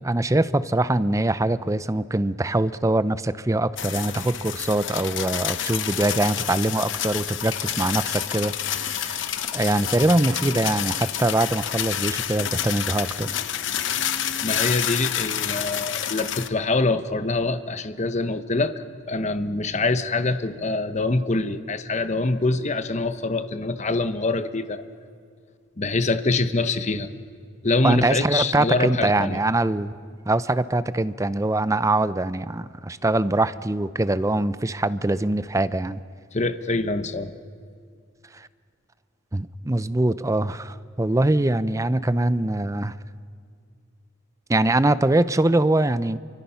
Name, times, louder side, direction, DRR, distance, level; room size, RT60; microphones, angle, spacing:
voice 1, 0.0-9.3 9.5-13.3 27.8-29.9 30.3-36.0 38.3-38.5 39.3-42.9 44.5-46.2, right 2 dB, 15° right, 14 dB, 0.5 m, -23 dB
sound 1, 3.8-16.5, left 10 dB, 60° left, 0.9 m, -28 dB
voice 2, 14.4-24.8 25.8-27.1 27.6-29.4 36.3-37.3, left 3 dB, 35° left, 10 dB, 0.9 m, -25 dB
29.0 x 24.0 x 5.7 m, 2.2 s
head